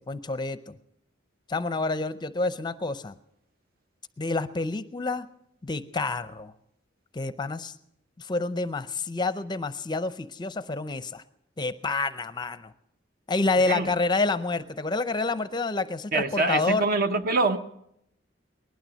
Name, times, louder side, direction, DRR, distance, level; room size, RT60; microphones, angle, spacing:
voice 1, 0.1-0.8 1.5-3.1 4.2-5.3 5.6-6.5 7.1-7.7 8.2-11.2 11.6-12.7 13.3-16.9, left 3 dB, 25° left, 13 dB, 0.5 m, -28 dB
voice 2, 16.1-17.6, right 3 dB, 50° right, 9 dB, 0.9 m, -24 dB
19.0 x 12.0 x 6.3 m, 0.77 s
head